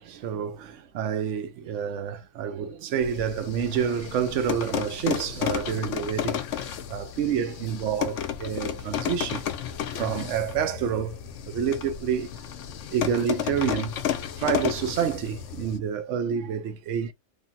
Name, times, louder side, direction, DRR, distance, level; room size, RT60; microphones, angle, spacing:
voice 1, 0.0-12.5 12.9-14.0 14.4-17.1, right 8 dB, 70° right, 1.0 m, -28 dB
sound 1, 3.0-15.8, left 10 dB, 70° left, 0.9 m, -32 dB
3.2 x 2.3 x 2.6 m
omnidirectional pair, 1.4 m